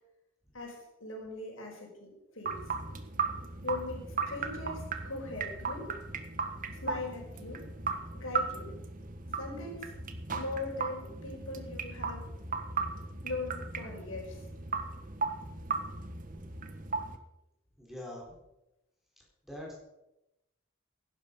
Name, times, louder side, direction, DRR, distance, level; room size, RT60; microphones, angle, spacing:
voice 1, 0.5-2.6 3.6-5.9 6.7-7.7 8.1-8.7 9.3-9.9 10.3-12.3 13.2-14.4, left 2 dB, 70° left, 0 dB, 4.9 m, -40 dB
sound 1, 2.5-17.2, right 4 dB, 40° right, 1.4 m, -37 dB
voice 2, 17.8-18.3 19.5-19.8, left 1 dB, ahead, -3 dB, 4.3 m, -42 dB
16.0 x 12.0 x 5.4 m, 0.91 s
head